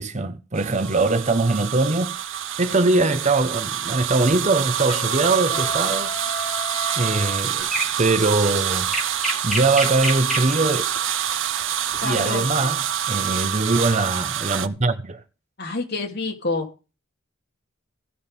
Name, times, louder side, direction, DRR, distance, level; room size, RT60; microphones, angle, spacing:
voice 1, 0.0-2.1 2.6-6.1 7.0-7.7 8.0-8.9 9.4-10.8 12.0-15.2, right 3 dB, 35° right, 0.9 m, -22 dB
sound 1, 0.6-14.7, right 10 dB, 65° right, 0.8 m, -26 dB
Trumpet, 4.9-7.4, left 3 dB, 35° left, 2.3 m, -34 dB
sound 2, 7.6-10.6 12.6-12.9, right 1 dB, ahead, 3.0 m, -28 dB
voice 2, 12.0-12.7 15.6-16.7, left 3 dB, 55° left, 2.9 m, -28 dB
16.5 x 6.3 x 5.4 m
head